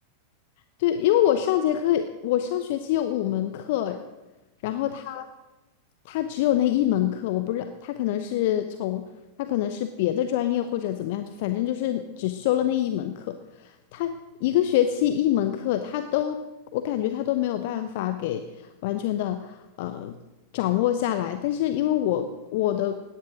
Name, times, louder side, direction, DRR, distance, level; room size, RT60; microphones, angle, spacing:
voice 1, 0.8-4.0 4.6-5.3 6.1-9.0 9.4-14.1 14.4-16.4 16.7-18.4 18.8-20.2 20.5-23.0, left 12 dB, 50° left, 9 dB, 0.9 m, -25 dB
17.0 x 10.5 x 6.1 m, 1.1 s
figure-of-eight pair, 90°, 0 cm